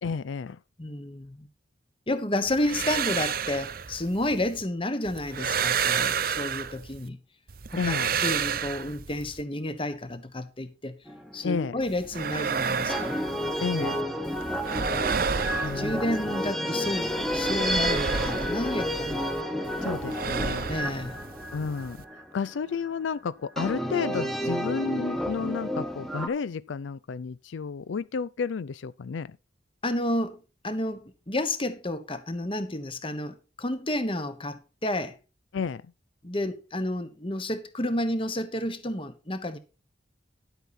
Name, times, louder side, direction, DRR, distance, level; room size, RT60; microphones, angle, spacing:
voice 1, 0.0-0.6 7.8-8.2 11.4-11.8 13.6-14.0 15.6-16.1 19.8-20.7 21.5-29.4 35.5-35.9, left 5 dB, 85° left, 0.4 m, -31 dB
voice 2, 0.8-1.5 2.1-7.2 7.7-11.0 11.3-13.2 15.4-19.3 20.7-21.2 29.8-35.2 36.2-39.6, left 1 dB, 30° left, 1.2 m, -31 dB
sound 1, 2.5-4.6 5.1-7.1 7.5-9.4 11.8-14.0 14.3-16.5 16.8-19.4 19.7-22.0, right 6 dB, 50° right, 0.7 m, -31 dB
sound 2, 11.1-11.6 12.9-22.5 23.6-26.3, equal, ahead, 1.2 m, -31 dB
11.0 x 8.1 x 4.2 m
head